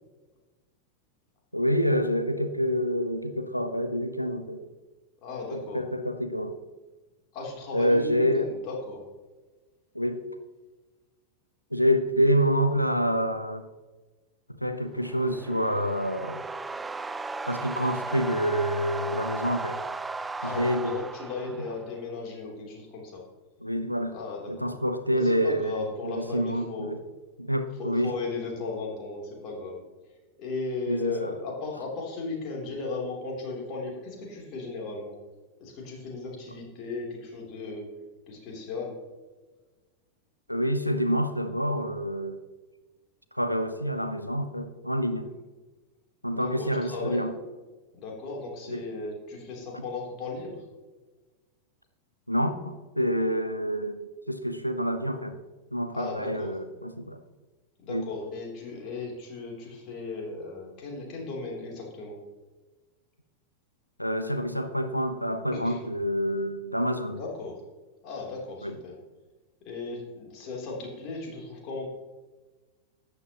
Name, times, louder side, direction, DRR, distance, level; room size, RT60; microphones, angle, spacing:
voice 1, 1.5-4.6 5.5-6.6 7.7-8.5 9.9-10.2 11.7-13.6 14.6-16.4 17.5-19.8 20.4-21.0 23.6-24.2 24.5-27.0 27.4-28.1 30.9-31.3 40.5-42.4 43.3-45.3 46.2-47.3 48.7-48.8 49.7-49.8 52.3-54.0 54.3-55.4 55.7-57.2 57.9-58.1 64.0-67.2 68.6-68.8, equal, 90° left, 10 dB, 0.8 m, -27 dB
voice 2, 5.2-5.8 7.3-9.0 20.4-23.2 24.1-24.7 25.1-26.9 27.8-29.8 30.4-35.2 35.6-37.9 38.3-39.0 46.3-47.3 47.9-50.6 55.9-56.5 57.8-62.2 65.5-65.8 67.1-67.5 68.0-69.0 69.6-71.9, left 3 dB, 40° left, -2 dB, 3.4 m, -36 dB
sound 1, 14.9-22.0, right 3 dB, 10° right, 0.4 m, -36 dB
13.5 x 9.8 x 3.1 m, 1.2 s
figure-of-eight pair, 90°, 0 cm